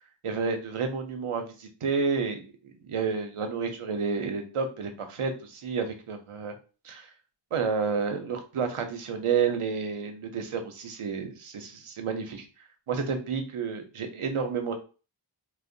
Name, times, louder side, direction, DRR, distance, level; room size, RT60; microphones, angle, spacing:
voice 1, 0.2-2.4 2.8-6.5 6.8-7.1 7.5-12.4 12.9-14.8, right 5 dB, 85° right, 6 dB, 0.6 m, -30 dB
2.7 x 2.0 x 2.5 m, 0.36 s
wide cardioid pair, 40°, 49 cm